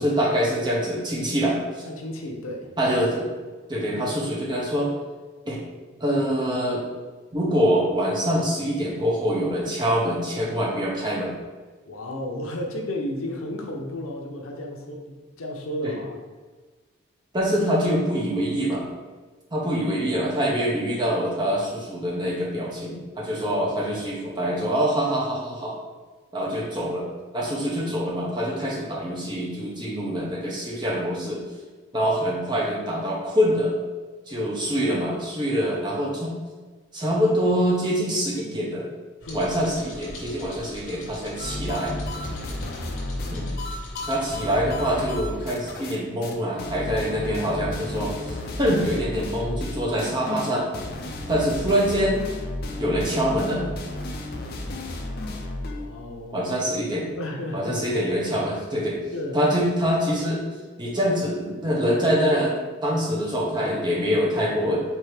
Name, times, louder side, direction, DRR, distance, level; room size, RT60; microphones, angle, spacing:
voice 1, 0.0-1.8 2.8-3.3 3.7-4.9 5.5-5.6 6.0-6.8 7.3-11.3 15.8-15.9 17.3-18.8 19.5-25.7 26.3-27.1 27.3-31.4 31.9-33.7 34.3-36.3 36.9-38.9 39.3-42.0 43.3-43.5 44.1-50.7 51.3-52.2 52.8-53.6 56.3-57.1 57.5-59.0 59.3-60.4 60.8-62.5 62.8-64.8, equal, 20° right, -4 dB, 0.8 m, -25 dB
voice 2, 1.9-2.7 11.9-16.2 23.3-23.5 39.3-39.5 55.6-56.5 57.2-57.8 59.1-59.4, left 1 dB, 90° left, 1 dB, 0.7 m, -33 dB
sound 1, 39.2-44.4, left 2 dB, 65° left, 1.0 m, -41 dB
sound 2, 41.4-46.0 46.2-46.3 46.6-55.9, left 1 dB, 50° left, 0.4 m, -32 dB
4.6 x 2.7 x 3.2 m, 1.3 s
head